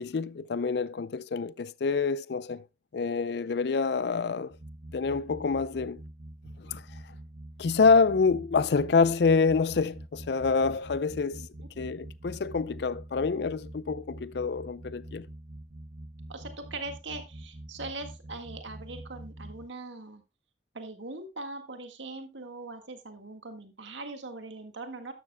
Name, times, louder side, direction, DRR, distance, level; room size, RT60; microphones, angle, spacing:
voice 1, 0.0-2.6 2.9-4.5 4.9-6.0 6.6-6.8 7.6-11.4 11.8-15.3, left 4 dB, 60° left, 0.4 m, -26 dB
sound 1, 4.5-19.7, right 1 dB, 50° right, 0.9 m, -45 dB
voice 2, 16.3-20.2 20.7-25.1, right 2 dB, 80° right, 1.8 m, -41 dB
12.0 x 12.0 x 2.2 m
head